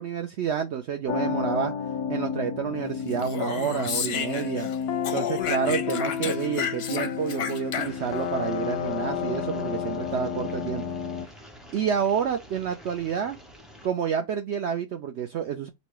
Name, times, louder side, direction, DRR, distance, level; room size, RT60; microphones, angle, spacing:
voice 1, 0.0-1.7 2.1-4.7 5.1-10.8 11.7-13.4 13.8-15.7, right 7 dB, 80° right, 0.6 m, -29 dB
sound 1, 1.1-11.3, left 7 dB, 85° left, 1.2 m, -31 dB
Speech, 3.1-4.8 5.0-8.2, left 7 dB, 60° left, 0.7 m, -32 dB
sound 2, 7.8-13.9, equal, ahead, 0.4 m, -48 dB
5.1 x 2.1 x 4.7 m
omnidirectional pair, 1.7 m